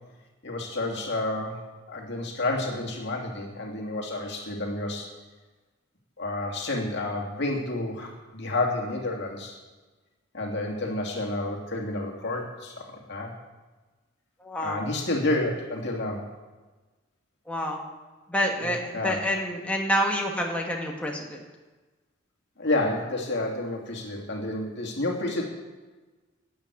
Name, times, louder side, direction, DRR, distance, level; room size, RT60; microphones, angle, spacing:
voice 1, 0.4-5.1 6.2-9.6 10.3-13.3 14.6-16.3 18.6-19.2 22.6-25.4, left 2 dB, 55° left, 0 dB, 2.7 m, -30 dB
voice 2, 14.4-14.8 17.5-17.8 18.3-21.4, equal, 5° left, 0 dB, 1.5 m, -28 dB
12.0 x 9.6 x 8.4 m, 1.3 s
head